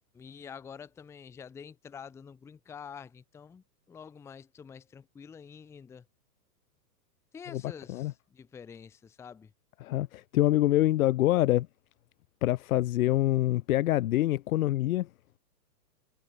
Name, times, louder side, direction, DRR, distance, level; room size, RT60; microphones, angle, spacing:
voice 1, 0.1-6.1 7.3-9.5, left 7 dB, 5° left, 0.8 m, -47 dB
voice 2, 7.5-8.1 9.8-11.7 12.4-15.1, left 15 dB, 60° left, 0.6 m, -26 dB
hypercardioid pair, 150°, 49 cm